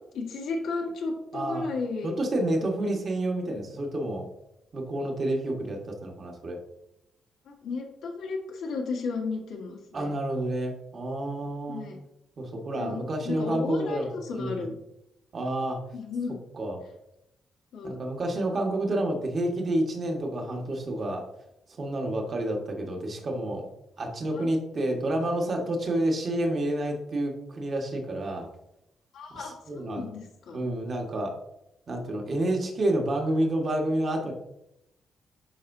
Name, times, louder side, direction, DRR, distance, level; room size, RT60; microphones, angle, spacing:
voice 1, 0.1-2.2 7.5-10.1 11.7-12.0 12.8-14.7 15.9-16.3 17.7-18.0 24.3-24.5 29.1-30.6, left 4 dB, 85° left, 0 dB, 1.6 m, -34 dB
voice 2, 1.3-1.7 2.0-4.3 4.7-6.6 9.9-11.9 12.4-14.6 15.3-15.8 16.5-16.8 17.8-21.2 21.8-23.7 24.0-28.5 29.3-30.1 30.5-31.4 31.9-34.3, right 1 dB, 40° right, 1 dB, 1.5 m, -29 dB
10.5 x 4.3 x 2.7 m, 0.83 s
cardioid pair, 125°, 0 cm